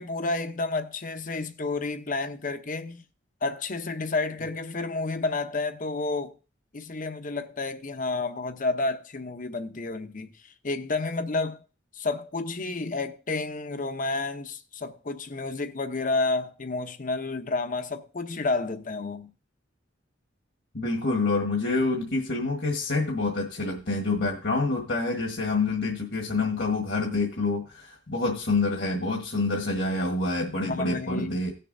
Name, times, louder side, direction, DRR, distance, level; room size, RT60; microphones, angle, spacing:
voice 1, 0.0-3.0 3.4-6.4 6.7-10.3 10.6-11.6 11.9-19.3 30.7-31.4, left 3 dB, 45° left, 0.8 m, -30 dB
voice 2, 20.7-31.5, left 3 dB, 65° left, 1.5 m, -27 dB
17.5 x 6.8 x 2.7 m
head